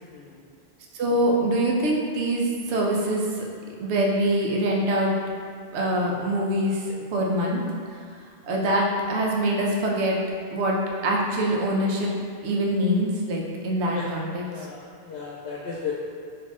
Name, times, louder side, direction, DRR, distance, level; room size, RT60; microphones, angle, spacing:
voice 1, 0.9-3.4 3.8-5.1 5.7-7.6 7.9-8.0 8.5-10.2 10.5-10.8 11.0-12.1 12.4-14.7, right 1 dB, 85° right, -2 dB, 0.9 m, -24 dB
voice 2, 14.4-15.9, left 6 dB, 80° left, -4 dB, 0.8 m, -35 dB
4.1 x 2.7 x 3.5 m, 2.2 s
omnidirectional pair, 1.1 m